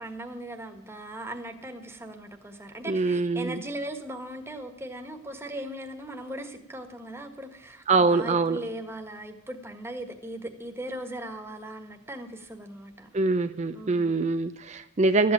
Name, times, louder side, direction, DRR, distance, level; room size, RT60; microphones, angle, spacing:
voice 1, 0.0-13.1 13.7-14.1, right 1 dB, 15° right, 5 dB, 1.5 m, -39 dB
voice 2, 2.9-3.6 7.9-8.6 13.1-15.3, right 3 dB, 35° right, 9 dB, 0.5 m, -24 dB
13.5 x 8.5 x 8.6 m, 0.82 s
head